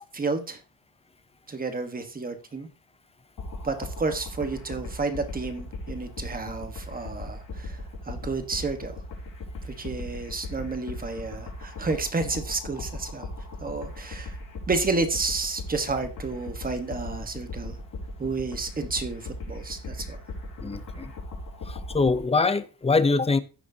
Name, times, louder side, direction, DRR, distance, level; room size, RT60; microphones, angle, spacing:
voice 1, 0.1-0.6 1.5-2.7 3.6-7.8 8.0-9.0 9.6-13.3 13.6-14.4 14.7-17.8 18.2-20.1, right 3 dB, 20° right, 1.2 m, -31 dB
sound 1, 3.4-22.2, left 1 dB, 50° left, 4.0 m, -38 dB
voice 2, 20.6-21.1 21.7-23.4, left 3 dB, 15° left, 0.5 m, -24 dB
16.0 x 6.4 x 2.7 m
cardioid pair, 160°, 42 cm